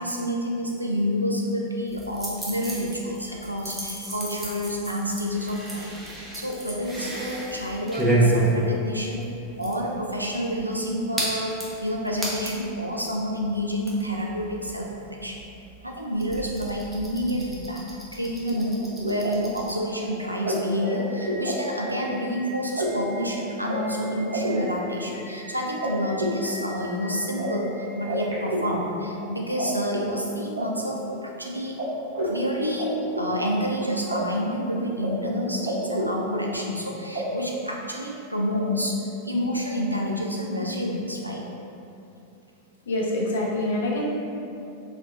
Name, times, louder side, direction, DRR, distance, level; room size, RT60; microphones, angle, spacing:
voice 1, 0.0-9.3 9.6-15.4 15.8-17.8 18.1-31.8 32.2-41.4, equal, 85° right, -1 dB, 0.3 m, -29 dB
sound 1, 1.9-12.7 13.1-13.2 13.4-19.7, right 1 dB, 10° right, 0.6 m, -31 dB
sound 2, 18.5-29.6 29.9-31.4 31.8-31.9 32.1-34.2 34.4-35.1 35.3-36.8 37.1-37.2, equal, 70° right, 0.7 m, -31 dB
voice 2, 42.9-44.1, left 1 dB, 65° left, -3 dB, 0.5 m, -25 dB
3.5 x 2.6 x 2.4 m, 2.7 s
figure-of-eight pair, 90°, 0 cm